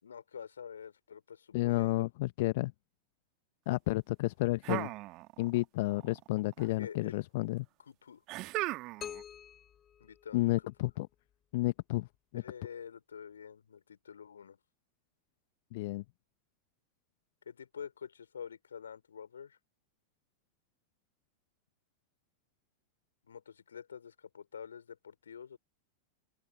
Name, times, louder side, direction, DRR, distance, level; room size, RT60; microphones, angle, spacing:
voice 1, 0.0-2.1 6.7-7.2 7.8-8.2 10.0-10.7 12.3-14.6 17.4-19.6 23.2-25.6, left 7 dB, 70° left, 4.7 m, -47 dB
voice 2, 1.5-2.7 3.7-4.9 5.4-7.6 10.3-11.1 11.5-12.1 12.3-12.4 15.7-16.0, left 20 dB, 50° left, 1.2 m, -31 dB
sound 1, 4.6-5.6 5.9-6.7 8.3-9.2, right 20 dB, 40° right, 1.9 m, -37 dB
sound 2, 9.0-10.9, left 9 dB, 25° left, 3.2 m, -47 dB
open air
figure-of-eight pair, 90°, 0 cm